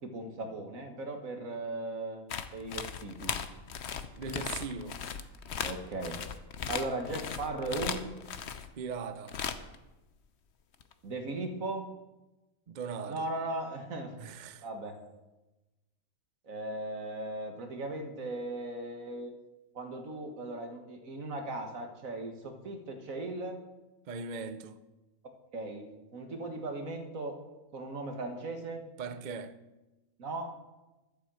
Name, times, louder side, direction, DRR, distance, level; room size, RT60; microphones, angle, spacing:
voice 1, 0.0-3.3 5.6-6.2 6.7-8.1 11.0-11.9 13.1-14.1 14.6-15.0 16.5-19.3 19.8-23.6 25.5-27.4 27.7-28.8 30.2-30.5, right 2 dB, 70° right, 2.1 m, -37 dB
sound 1, 2.3-8.7 9.3-9.8 10.8-10.9, left 7 dB, 55° left, 1.0 m, -37 dB
voice 2, 4.1-5.0 8.8-9.4 12.7-13.3 14.2-14.7 24.1-24.8 29.0-29.6, right 5 dB, 45° right, 0.6 m, -39 dB
11.5 x 9.8 x 7.8 m
omnidirectional pair, 1.5 m